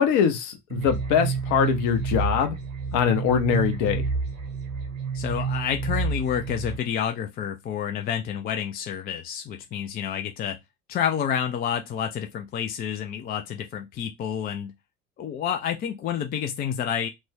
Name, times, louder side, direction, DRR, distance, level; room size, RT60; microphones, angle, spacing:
voice 1, 0.0-2.6 2.9-4.0, left 8 dB, 50° left, 0.8 m, -22 dB
sound 1, 0.7-6.8, right 5 dB, 75° right, 0.9 m, -29 dB
voice 2, 5.1-10.6 10.9-14.7 15.2-17.1, left 8 dB, 25° left, 0.4 m, -29 dB
2.5 x 2.1 x 3.4 m
figure-of-eight pair, 60°, 40 cm